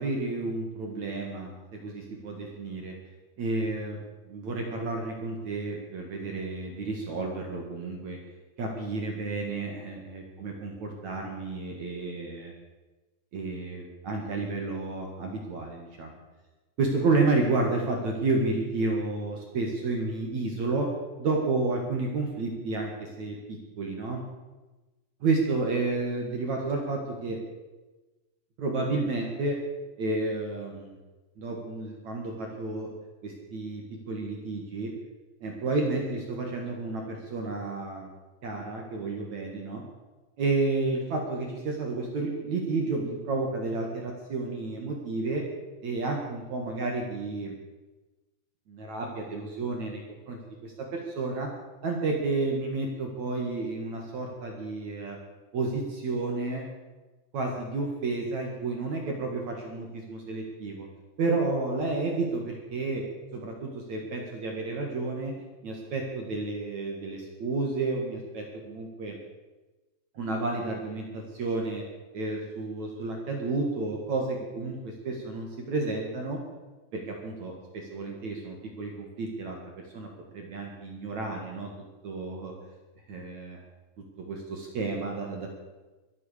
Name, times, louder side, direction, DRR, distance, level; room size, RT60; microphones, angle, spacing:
voice 1, 0.0-3.0 3.4-4.0 4.3-8.2 8.6-12.5 13.3-16.2 16.8-20.9 21.2-24.2 25.2-27.4 28.6-29.6 30.0-30.9 31.4-32.9 33.2-34.9 35.4-38.1 38.4-39.8 40.4-45.4 45.8-47.6 48.7-50.0 50.3-51.5 51.8-55.2 55.5-56.7 57.3-60.9 61.2-63.0 63.3-65.3 65.6-69.2 70.1-71.8 72.1-76.4 76.9-79.6 79.9-81.7 82.0-82.5 83.1-83.6 84.2-85.5, right 3 dB, 50° right, 1 dB, 2.5 m, -31 dB
23.0 x 8.6 x 6.7 m, 1.2 s
omnidirectional pair, 5.5 m